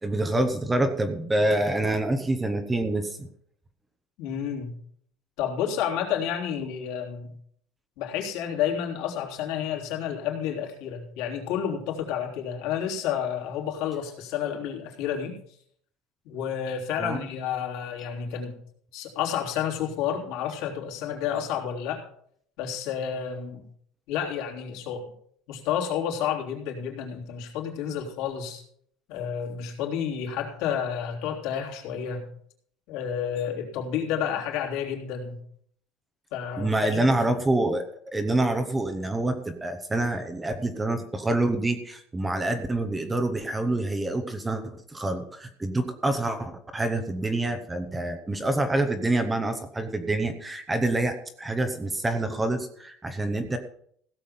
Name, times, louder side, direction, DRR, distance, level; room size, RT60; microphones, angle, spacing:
voice 1, 0.0-3.3 17.0-17.2 36.6-53.6, right 2 dB, 10° right, 7 dB, 0.8 m, -27 dB
voice 2, 4.2-4.8 5.4-7.3 8.0-15.3 16.2-18.6 18.9-22.0 22.6-23.7 24.1-25.0 25.5-28.6 29.1-32.3 32.9-35.4 36.3-37.2, left 8 dB, 65° left, -1 dB, 3.4 m, -30 dB
16.5 x 7.1 x 5.7 m, 0.65 s
cardioid pair, 175°, 0 cm